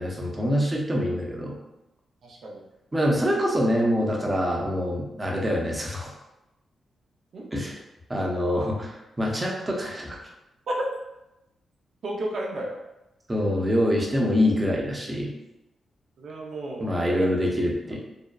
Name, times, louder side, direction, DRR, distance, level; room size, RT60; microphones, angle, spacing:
voice 1, 0.0-1.5 2.9-6.1 7.5-7.7 8.1-10.2 13.3-15.3 16.8-18.0, equal, 20° right, -2 dB, 0.6 m, -25 dB
voice 2, 2.2-2.6 7.3-7.5 10.7-10.8 12.0-12.8 16.2-16.9 17.2-17.3, right 1 dB, 65° right, -2 dB, 0.5 m, -33 dB
2.6 x 2.1 x 2.3 m, 0.92 s
cardioid pair, 70°, 0 cm